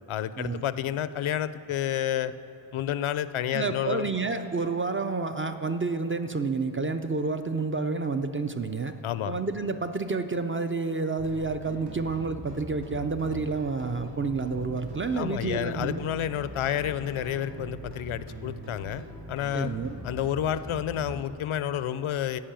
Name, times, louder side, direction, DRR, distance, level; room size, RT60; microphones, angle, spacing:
voice 1, 0.1-2.3 2.7-4.1 9.0-9.4 15.1-19.7 20.0-22.4, left 10 dB, 75° left, 14 dB, 0.6 m, -30 dB
voice 2, 3.5-8.9 9.3-16.0 19.5-20.0, right 4 dB, 30° right, 8 dB, 0.4 m, -29 dB
sound 1, 11.2-21.3, right 1 dB, 55° right, 2.2 m, -42 dB
15.5 x 5.4 x 8.8 m, 2.9 s
wide cardioid pair, 130°, 49 cm